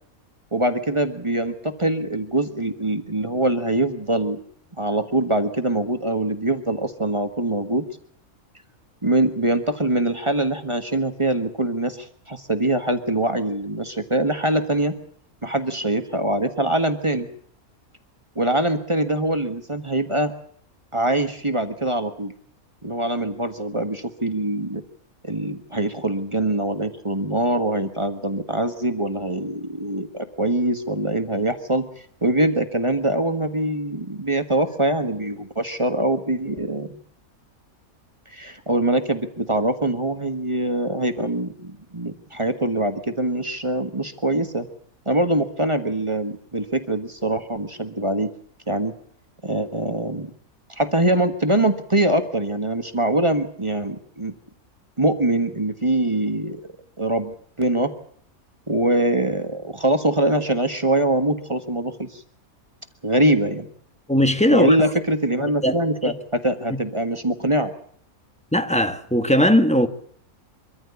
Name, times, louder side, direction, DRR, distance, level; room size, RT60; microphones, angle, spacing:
voice 1, 0.5-4.4 4.8-7.8 9.0-14.9 15.4-17.3 18.3-20.3 20.9-22.3 22.8-24.8 25.2-31.9 32.2-37.0 38.3-44.7 45.0-48.3 48.7-48.9 49.4-50.3 50.8-54.3 55.0-56.6 57.0-57.9 58.7-62.2 63.0-63.7 64.5-67.7, right 1 dB, 20° right, 1.5 m, -23 dB
voice 2, 64.1-64.8 65.6-65.7 66.0-66.1 66.7-66.8 68.5-69.9, equal, 5° left, 1.3 m, -18 dB
24.5 x 14.0 x 8.3 m
omnidirectional pair, 1.5 m